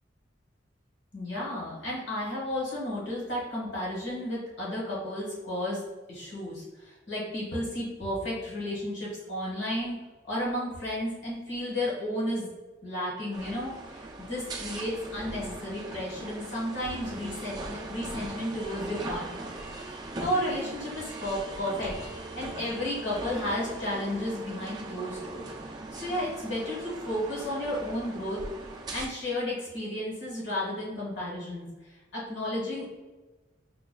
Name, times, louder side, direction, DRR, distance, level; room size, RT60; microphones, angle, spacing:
voice 1, 1.1-5.8 6.1-10.0 10.2-12.5 12.8-19.5 19.9-25.5 25.9-28.4 28.9-31.7 32.1-32.9, left 1 dB, 65° left, -5 dB, 1.4 m, -33 dB
sound 1, 13.3-29.0, right 2 dB, 20° right, 0.3 m, -40 dB
5.8 x 2.3 x 2.2 m, 1.2 s
head